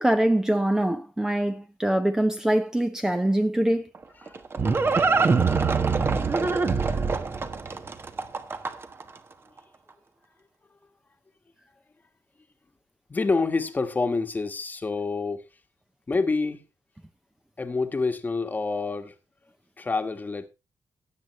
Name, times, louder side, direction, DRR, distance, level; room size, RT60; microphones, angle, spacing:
voice 1, 0.0-3.9, right 1 dB, 10° right, 0.8 m, -23 dB
Livestock farm animals working animals, 3.9-9.0, right 4 dB, 35° right, 1.2 m, -24 dB
voice 2, 13.1-15.5 16.1-16.6 17.6-19.1 19.8-20.5, left 3 dB, 25° left, 1.4 m, -27 dB
17.0 x 8.0 x 3.1 m
wide cardioid pair, 125°, 7 cm